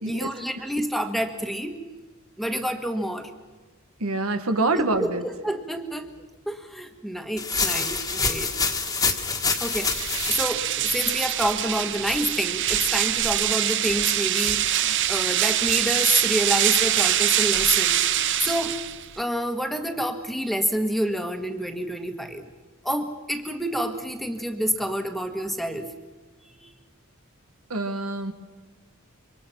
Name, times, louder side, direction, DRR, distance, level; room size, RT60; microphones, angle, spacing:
voice 1, 0.0-1.8 2.4-3.3 5.0-6.1 6.5-8.5 9.6-9.9 10.3-18.0 18.4-18.8 19.2-22.5 22.8-25.9 26.6-26.7, equal, ahead, 5 dB, 1.6 m, -28 dB
voice 2, 4.0-5.2 27.7-28.3, right 2 dB, 80° right, 7 dB, 1.9 m, -25 dB
sound 1, 7.4-10.4, left 4 dB, 15° left, 1.7 m, -26 dB
sound 2, 9.5-19.2, right 11 dB, 55° right, 0.8 m, -24 dB
26.0 x 24.5 x 5.8 m, 1.3 s
head